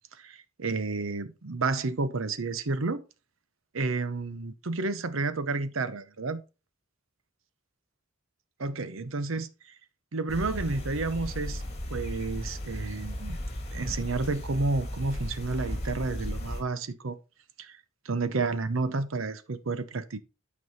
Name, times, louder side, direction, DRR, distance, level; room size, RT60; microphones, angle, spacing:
voice 1, 0.2-3.0 3.7-6.4 8.6-9.5 10.1-11.6 11.9-13.4 13.7-17.2 17.6-17.8 18.0-20.2, right 3 dB, 80° right, 0.8 m, -31 dB
sound 1, 10.3-16.6, left 1 dB, 35° left, 2.4 m, -35 dB
9.4 x 5.4 x 4.1 m
head